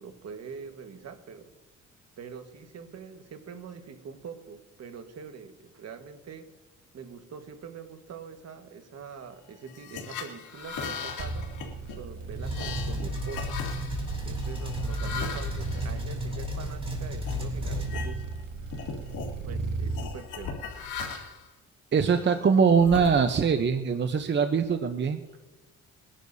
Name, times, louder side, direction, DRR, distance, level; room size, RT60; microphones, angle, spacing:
voice 1, 0.0-1.5 2.2-6.5 6.9-11.5 12.0-13.6 14.2-18.2 19.4-20.6, right 6 dB, 55° right, 8 dB, 1.6 m, -44 dB
sound 1, 9.7-16.7 17.2-17.4 17.8-18.4 18.7-19.3 19.9-21.5 22.1-23.6, left 5 dB, 80° left, 2.7 m, -39 dB
sound 2, 11.2-20.1, right 4 dB, 85° right, 2.1 m, -36 dB
sound 3, 12.4-18.0, equal, 20° right, 3.3 m, -34 dB
voice 2, 21.9-25.2, right 6 dB, 35° right, 7 dB, 0.8 m, -22 dB
22.5 x 11.5 x 2.7 m, 1.1 s
cardioid pair, 90°, 30 cm